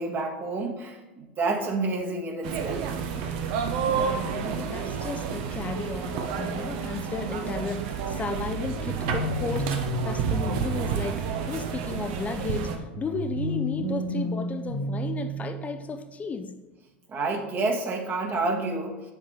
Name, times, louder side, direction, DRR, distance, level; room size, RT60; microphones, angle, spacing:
voice 1, 0.0-2.9 17.1-19.1, right 3 dB, 35° right, 1.6 m, -29 dB
sound 1, 2.4-12.8, right 6 dB, 60° right, 0.9 m, -30 dB
voice 2, 3.9-16.6, left 5 dB, 25° left, 0.6 m, -34 dB
sound 2, 8.6-11.8 12.9-15.9, right 1 dB, 90° right, 2.0 m, -32 dB
8.3 x 7.3 x 3.3 m
hypercardioid pair, 80°, 6 cm